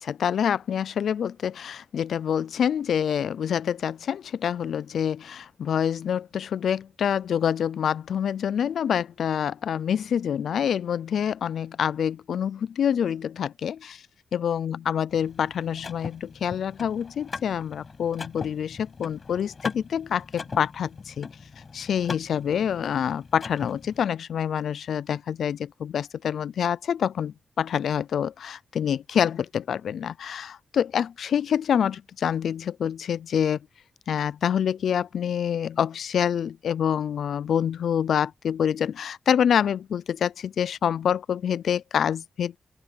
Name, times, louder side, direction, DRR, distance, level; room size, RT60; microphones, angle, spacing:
voice 1, 0.0-14.0 14.3-21.3 21.7-33.6 34.1-42.6, left 8 dB, 75° left, 0.4 m, -26 dB
Car / Mechanisms, 15.1-24.0, left 4 dB, 35° left, 6.2 m, -40 dB
open air
wide cardioid pair, 175°, 0 cm